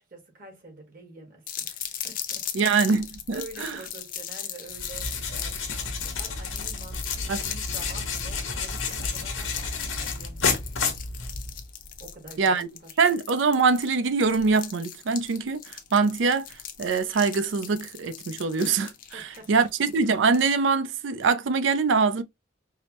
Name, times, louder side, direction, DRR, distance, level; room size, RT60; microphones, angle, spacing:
voice 1, 0.0-2.7 3.3-10.5 11.2-11.3 12.0-13.0 19.1-19.7, right 2 dB, 45° right, 1.5 m, -47 dB
sound 1, 1.5-20.5, left 9 dB, 45° left, 0.5 m, -38 dB
voice 2, 2.5-3.8 7.3-7.4 12.4-12.7 13.0-22.2, right 4 dB, 70° right, 0.4 m, -24 dB
sound 2, 4.7-11.7, left 4 dB, 85° left, 1.0 m, -31 dB
4.8 x 2.0 x 2.8 m
head